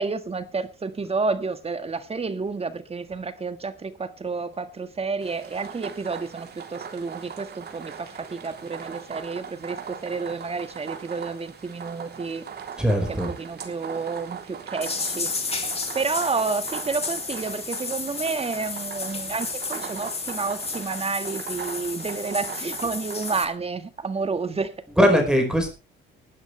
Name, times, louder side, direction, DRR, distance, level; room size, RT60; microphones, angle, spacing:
voice 1, 0.0-12.4 13.1-24.7, right 4 dB, 30° right, 1.8 m, -30 dB
sound 1, 5.2-23.4, right 7 dB, 55° right, 3.5 m, -40 dB
voice 2, 12.8-13.3 25.0-25.7, equal, 5° right, 5.1 m, -20 dB
sound 2, 14.8-23.4, left 4 dB, 30° left, 2.7 m, -32 dB
19.5 x 12.5 x 3.4 m
cardioid pair, 90°, 20 cm